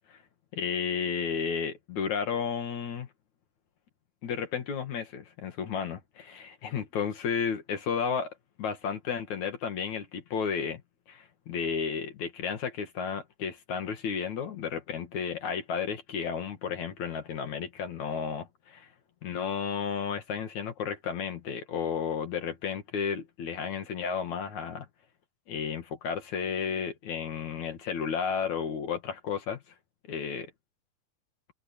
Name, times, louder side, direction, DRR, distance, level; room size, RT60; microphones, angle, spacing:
voice 1, 0.6-3.1 4.2-10.8 11.1-18.9 19.2-24.9 25.5-29.6 30.1-30.5, left 6 dB, 55° left, 3.3 m, -33 dB
open air
omnidirectional pair, 4.1 m